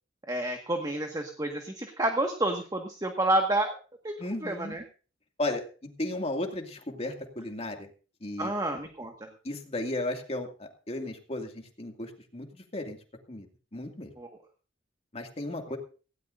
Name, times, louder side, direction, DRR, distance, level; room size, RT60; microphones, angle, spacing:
voice 1, 0.3-3.8 4.0-4.2 4.4-4.8 8.4-9.3 14.2-14.3, right 1 dB, 20° right, 3 dB, 1.7 m, -29 dB
voice 2, 4.2-4.8 5.4-7.9 8.2-8.5 9.4-13.0 13.3-13.5 13.7-14.1 15.1-15.8, left 1 dB, 35° left, 3 dB, 2.4 m, -35 dB
18.5 x 17.0 x 2.7 m, 0.36 s
head